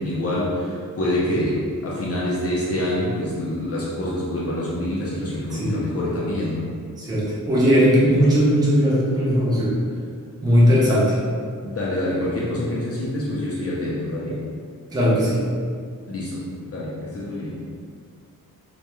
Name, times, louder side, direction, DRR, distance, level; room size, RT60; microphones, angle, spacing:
voice 1, 0.0-6.7 11.6-14.5 16.1-17.7, left 1 dB, 45° left, -7 dB, 0.4 m, -26 dB
voice 2, 7.0-9.8 10.4-11.2 14.9-15.4, equal, 10° right, -7 dB, 0.4 m, -18 dB
2.2 x 2.0 x 2.9 m, 2.1 s
wide cardioid pair, 150°, 34 cm